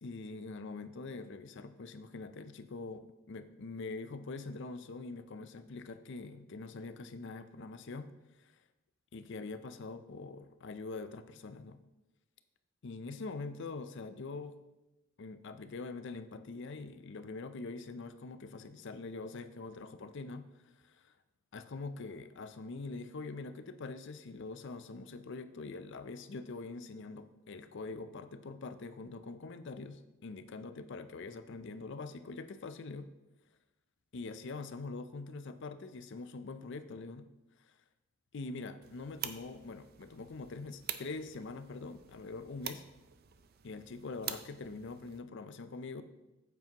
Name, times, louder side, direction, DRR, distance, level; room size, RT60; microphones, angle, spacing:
voice 1, 0.0-8.1 8.4-8.5 9.1-11.8 12.8-14.6 15.2-20.5 20.8-21.1 21.5-33.1 34.1-37.3 37.6-37.7 38.3-42.8 43.6-46.0, left 3 dB, 55° left, 10 dB, 0.5 m, -44 dB
sound 1, 38.8-45.2, right 10 dB, 45° right, 0.4 m, -46 dB
8.9 x 8.1 x 2.9 m, 0.99 s
head